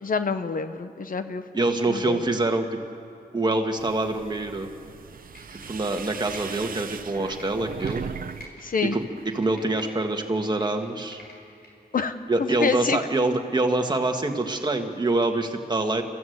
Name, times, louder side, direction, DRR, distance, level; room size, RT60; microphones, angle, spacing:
voice 1, 0.0-1.4 1.9-2.2 8.6-9.0 11.9-12.1 12.4-13.0, left 5 dB, 60° left, 10 dB, 0.9 m, -27 dB
voice 2, 1.5-2.8 3.3-4.7 5.7-8.1 8.8-11.2 12.3-16.0, right 2 dB, 25° right, 4 dB, 1.7 m, -25 dB
sound 1, 3.8-8.4 8.7-9.4, right 6 dB, 60° right, 0.7 m, -38 dB
Computer keyboard, 5.2-7.9 8.3-10.0 10.3-11.7 12.1-12.2, left 1 dB, 80° left, 4.9 m, -47 dB
29.5 x 14.5 x 8.0 m, 2.7 s
wide cardioid pair, 150°, 16 cm